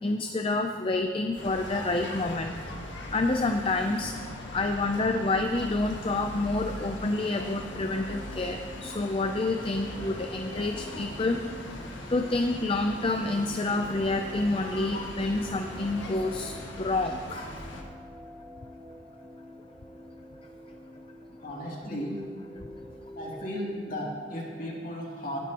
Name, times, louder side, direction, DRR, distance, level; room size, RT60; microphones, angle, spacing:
voice 1, 0.0-2.6 3.1-4.1 4.5-11.5 12.1-17.5, left 2 dB, 30° left, 5 dB, 0.5 m, -28 dB
sound 1, 1.4-17.8, left 1 dB, 90° left, 1.6 m, -40 dB
sound 2, 7.7-24.8, equal, 5° right, 0.8 m, -46 dB
voice 2, 21.4-22.1 23.1-25.4, equal, 45° left, -4 dB, 2.9 m, -35 dB
18.5 x 11.0 x 3.0 m, 2.2 s
head